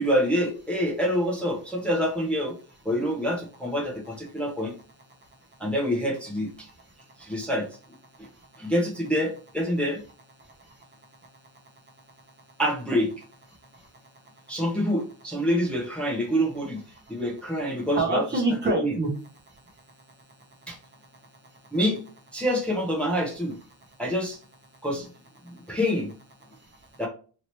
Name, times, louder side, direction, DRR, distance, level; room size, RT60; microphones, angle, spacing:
voice 1, 0.0-2.5 2.8-4.7 5.6-6.7 7.2-7.7 8.2-8.3 8.6-10.0 12.6-13.1 14.5-16.8 17.1-18.2 18.7-18.9 20.7-20.8 21.7-22.0 22.3-23.6 24.0-24.4 24.8-25.1 25.7-26.1 27.0-27.1, equal, 5° left, -2 dB, 0.7 m, -26 dB
voice 2, 6.6-7.0 8.3-8.5 10.4-10.9 13.7-13.9 16.9-17.1 17.9-19.1 19.5-19.6 21.5-21.6 23.9-24.0 25.7-25.8 26.5-26.9, right 2 dB, 25° right, 2 dB, 0.8 m, -30 dB
2.9 x 2.9 x 2.9 m, 0.37 s
cardioid pair, 120°, 46 cm